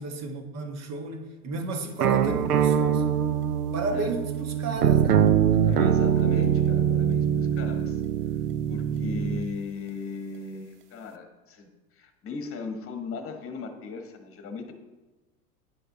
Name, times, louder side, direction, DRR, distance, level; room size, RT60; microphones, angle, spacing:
voice 1, 0.0-3.1 3.7-5.3, right 3 dB, 35° right, 5 dB, 1.3 m, -33 dB
sound 1, 2.0-9.5, right 8 dB, 90° right, 0.6 m, -23 dB
voice 2, 5.7-8.0 8.7-11.7 12.0-14.7, left 4 dB, 30° left, 5 dB, 1.4 m, -37 dB
10.0 x 5.5 x 3.8 m, 1.2 s
hypercardioid pair, 95°, 45 cm